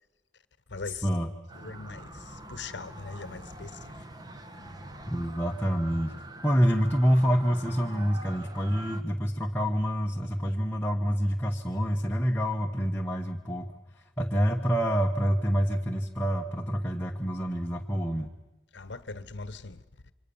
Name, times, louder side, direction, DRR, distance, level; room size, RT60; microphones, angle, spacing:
voice 1, 0.7-1.1 1.5-4.1 18.7-20.1, left 3 dB, 65° left, 1.1 m, -41 dB
sound 1, 1.5-9.0, right 1 dB, 20° right, 1.5 m, -44 dB
voice 2, 5.0-6.1 6.4-13.7 14.2-18.3, equal, 10° left, 1.2 m, -27 dB
28.0 x 24.5 x 7.1 m
head